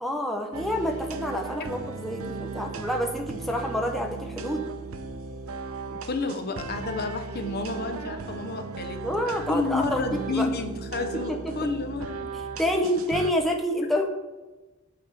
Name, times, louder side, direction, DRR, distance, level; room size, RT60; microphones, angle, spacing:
voice 1, 0.0-4.6 9.0-10.5 11.3-11.4 12.6-14.1, equal, ahead, 1 dB, 0.6 m, -28 dB
sound 1, 0.5-13.3, right 4 dB, 75° right, 0.7 m, -37 dB
voice 2, 5.9-9.2 9.5-12.3, left 3 dB, 45° left, 6 dB, 0.7 m, -30 dB
8.5 x 3.5 x 6.0 m, 1.2 s
head